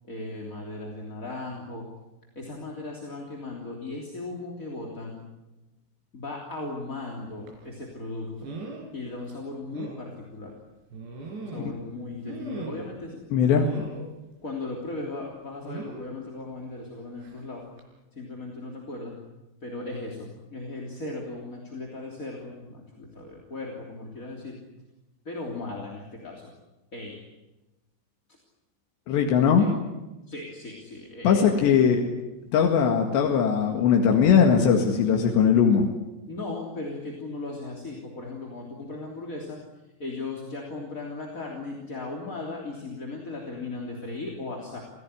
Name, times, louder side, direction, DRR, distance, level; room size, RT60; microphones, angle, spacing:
voice 1, 0.1-1.9 2.3-5.2 6.1-8.5 8.9-10.5 11.4-13.2 14.4-17.6 18.1-19.2 19.6-24.6 25.2-26.5 26.9-27.2 29.6-29.7 30.3-31.9 36.3-39.6 40.0-44.8, left 2 dB, 20° left, -1 dB, 3.1 m, -37 dB
sound 1, 7.5-7.6 8.4-8.9 9.3-9.4 9.7-10.0 10.9-11.8 12.3-13.0 13.6-14.1 15.6-16.1 17.2-17.4 17.8-17.9, right 3 dB, 80° right, 6.9 m, -38 dB
voice 2, 13.3-13.7 29.1-29.7 31.2-32.0 32.5-35.9, left 7 dB, 85° left, 2 dB, 4.2 m, -20 dB
27.0 x 17.0 x 10.0 m, 1.1 s
omnidirectional pair, 4.9 m